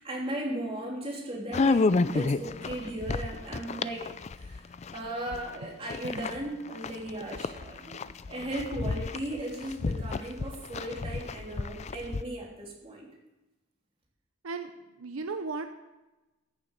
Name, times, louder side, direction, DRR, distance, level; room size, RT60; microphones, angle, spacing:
voice 1, 0.0-4.6 4.9-7.9 8.3-13.1, right 1 dB, 25° right, -3 dB, 3.2 m, -37 dB
sound 1, 1.5-5.6 5.9-12.2, left 3 dB, 30° left, 0.4 m, -31 dB
voice 2, 14.4-15.7, right 4 dB, 85° right, 8 dB, 0.8 m, -36 dB
14.0 x 7.3 x 6.6 m, 1.0 s
head